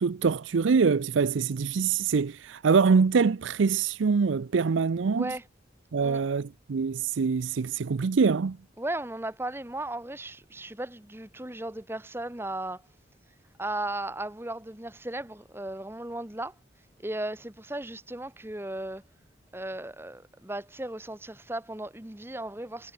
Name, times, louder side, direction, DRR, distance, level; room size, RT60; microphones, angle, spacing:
voice 1, 0.0-5.3 5.9-8.6, right 5 dB, 80° right, 0.5 m, -24 dB
voice 2, 5.1-5.4 6.0-6.2 8.8-12.8 13.6-16.5 17.0-19.0 19.5-22.9, right 1 dB, 10° right, 1.0 m, -36 dB
head